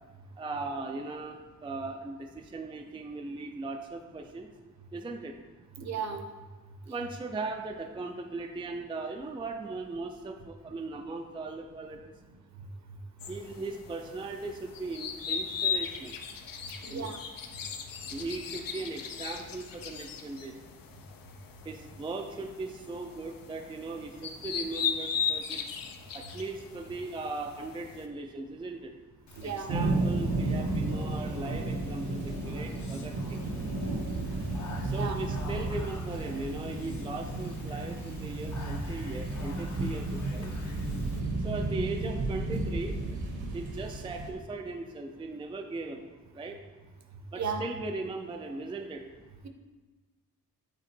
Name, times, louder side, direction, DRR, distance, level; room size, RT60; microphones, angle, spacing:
voice 1, 0.4-1.4 1.6-4.5 4.9-5.4 6.9-12.1 13.3-16.1 16.9-17.1 18.1-20.5 21.6-25.6 26.1-28.9 29.4-33.4 34.8-40.5 41.4-43.0 43.5-46.0 46.3-46.6 47.3-49.0, right 3 dB, 15° right, 4 dB, 0.4 m, -38 dB
voice 2, 5.8-6.3 16.8-17.2 29.3-29.7 34.3-34.4 35.0-35.2 47.4-47.7, right 5 dB, 50° right, 7 dB, 0.7 m, -34 dB
sound 1, 13.2-28.1, left 7 dB, 70° left, 0.7 m, -37 dB
Speech, 29.3-41.2, left 2 dB, 50° left, 1.0 m, -46 dB
sound 2, 29.7-44.3, right 2 dB, 80° right, 1.1 m, -33 dB
8.8 x 3.8 x 4.4 m, 1.3 s
wide cardioid pair, 125°, 35 cm